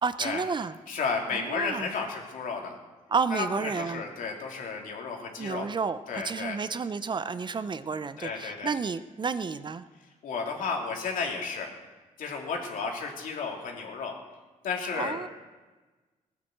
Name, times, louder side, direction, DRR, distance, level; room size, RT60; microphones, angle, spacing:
voice 1, 0.0-0.8 1.3-1.9 3.1-4.0 5.4-9.8 14.9-15.3, right 5 dB, 35° right, 13 dB, 0.7 m, -31 dB
voice 2, 0.9-2.8 3.3-5.7 6.1-6.6 8.2-8.7 10.2-11.7 12.2-14.2 14.6-15.3, left 5 dB, 75° left, 1 dB, 3.1 m, -33 dB
17.5 x 10.0 x 7.9 m, 1.3 s
cardioid pair, 110°, 14 cm